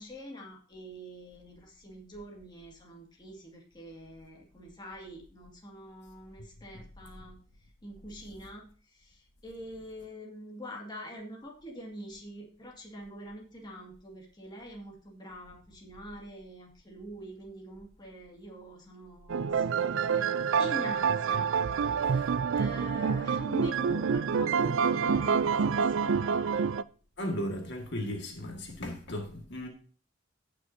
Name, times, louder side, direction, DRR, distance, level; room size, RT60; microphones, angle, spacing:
voice 1, 0.0-20.3 20.6-26.7, equal, 20° left, 2.1 m, -45 dB
sound 1, 19.3-26.8, right 6 dB, 65° right, 0.4 m, -27 dB
voice 2, 27.2-29.7, equal, 55° left, 1.8 m, -36 dB
17.0 x 6.1 x 2.7 m
head